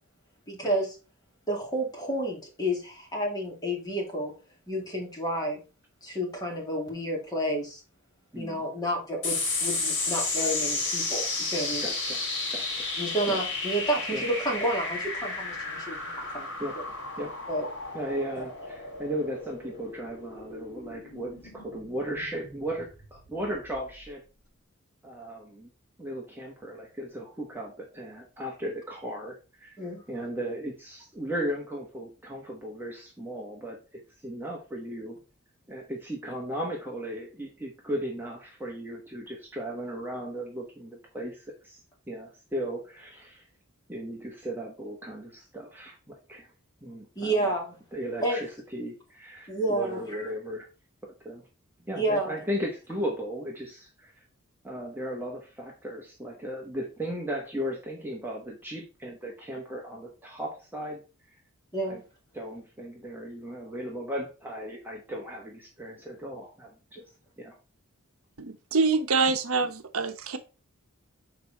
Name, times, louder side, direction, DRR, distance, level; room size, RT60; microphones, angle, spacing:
voice 1, 0.5-1.0 1.5-4.3 4.7-5.6 6.0-7.8 8.3-11.9 13.0-16.5 17.5-17.7 18.4-18.5 29.8-30.0 47.2-47.8 48.2-48.4 49.5-50.3 52.0-52.4 61.7-62.0, right 1 dB, 20° left, -1 dB, 2.4 m, -30 dB
voice 2, 8.3-8.6 11.8-12.2 12.5-12.9 13.3-13.4 14.1-14.2 16.6-16.7 17.2-17.3 17.9-24.2 25.0-25.7 26.0-29.8 30.1-35.2 35.7-41.8 42.1-43.4 43.9-46.5 46.8-47.5 47.9-50.7 51.0-51.4 51.9-54.2 54.6-61.0 61.9-62.0 62.3-66.7 67.4-67.5 69.3-69.4, equal, 10° right, -1 dB, 1.1 m, -36 dB
sound 1, 9.2-24.0, left 3 dB, 55° left, 2.8 m, -33 dB
voice 3, 68.4-70.4, right 4 dB, 75° right, 8 dB, 0.8 m, -26 dB
6.6 x 4.7 x 4.1 m, 0.32 s
head